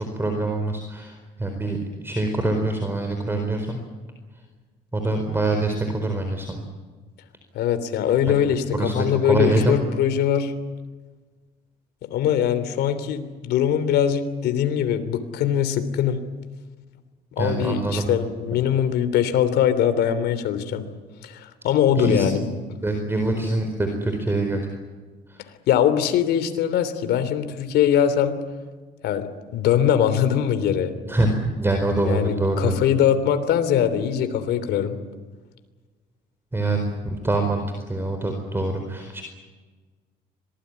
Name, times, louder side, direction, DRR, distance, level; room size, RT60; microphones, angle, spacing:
voice 1, 0.0-3.8 4.9-6.6 8.4-9.8 17.4-18.1 22.0-22.3 22.8-24.6 25.3-25.4 31.1-32.8 36.5-39.2, right 2 dB, 15° right, 4 dB, 4.4 m, -25 dB
voice 2, 7.5-10.5 12.1-16.2 17.4-20.8 21.2-22.5 25.7-28.4 29.0-30.9 32.0-35.0, left 9 dB, 75° left, 10 dB, 3.2 m, -22 dB
26.0 x 20.0 x 9.8 m, 1.4 s
cardioid pair, 110°, 17 cm